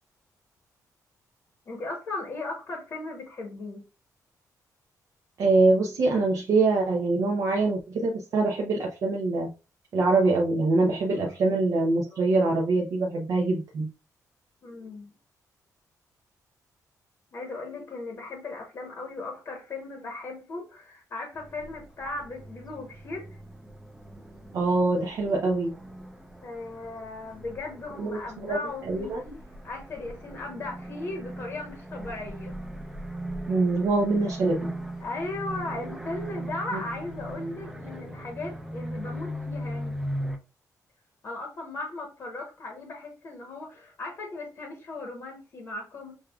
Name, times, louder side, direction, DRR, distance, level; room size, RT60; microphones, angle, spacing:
voice 1, 1.7-3.8 12.1-12.4 14.6-15.1 17.3-23.4 26.4-29.1 29.6-32.5 35.0-40.0 41.2-46.1, left 2 dB, 45° left, 1.0 m, -37 dB
voice 2, 5.4-9.5 9.9-13.9 24.5-25.7 28.0-28.6 28.8-29.2 33.5-34.7 36.7-36.8, right 3 dB, 55° right, 0.6 m, -24 dB
sound 1, 21.3-40.4, right 1 dB, 5° right, 0.5 m, -39 dB
6.2 x 2.3 x 2.3 m
wide cardioid pair, 165°, 7 cm